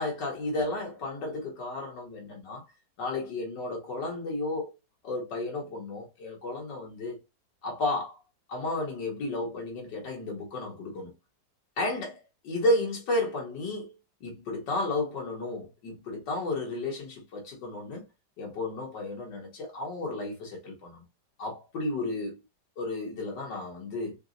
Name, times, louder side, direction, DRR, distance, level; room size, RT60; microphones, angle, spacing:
voice 1, 0.0-2.6 3.0-4.7 5.0-7.2 7.6-8.2 8.5-11.1 11.8-13.9 14.2-18.0 18.4-21.0 21.4-22.4 22.8-24.2, left 2 dB, 85° left, 1.9 m, -32 dB
3.9 x 3.9 x 2.5 m
omnidirectional pair, 1.8 m